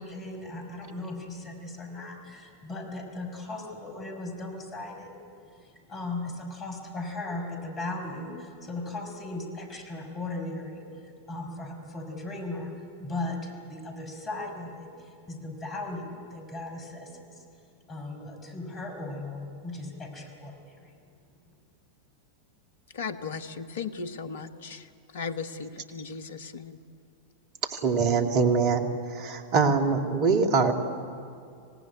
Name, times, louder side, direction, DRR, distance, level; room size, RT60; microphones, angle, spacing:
voice 1, 0.0-5.2 5.5-17.4 17.9-20.9, left 2 dB, 25° left, 3 dB, 5.8 m, -37 dB
voice 2, 22.9-24.9 25.1-26.8, left 5 dB, 60° left, 10 dB, 1.3 m, -36 dB
voice 3, 27.7-30.7, right 5 dB, 40° right, 5 dB, 2.4 m, -24 dB
26.0 x 18.0 x 9.5 m, 2.4 s
figure-of-eight pair, 90°, 0 cm